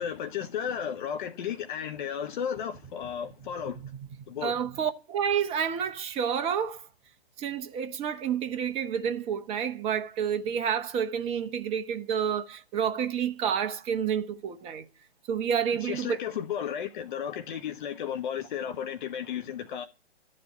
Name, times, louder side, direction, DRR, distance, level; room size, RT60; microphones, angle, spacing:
voice 1, 0.0-3.9 4.3-4.6 15.8-19.8, left 8 dB, 50° left, 1.4 m, -34 dB
voice 2, 4.2-6.8 7.4-14.8 15.3-16.1, right 8 dB, 20° right, 1.0 m, -29 dB
13.5 x 7.7 x 10.0 m
figure-of-eight pair, 130°, 33 cm